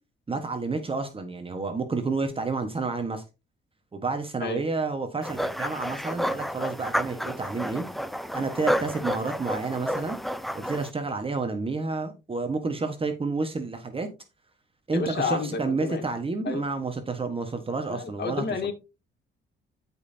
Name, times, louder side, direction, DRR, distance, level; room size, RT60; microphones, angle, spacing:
voice 1, 0.3-3.2 3.9-7.8 8.3-10.2 10.6-14.1 14.9-18.7, right 3 dB, 25° right, 1.3 m, -30 dB
sound 1, 5.2-10.9, equal, ahead, 0.7 m, -30 dB
voice 2, 14.9-16.0 16.4-16.7 17.9-18.7, left 5 dB, 55° left, 2.5 m, -30 dB
13.0 x 5.5 x 2.8 m
cardioid pair, 90°, 20 cm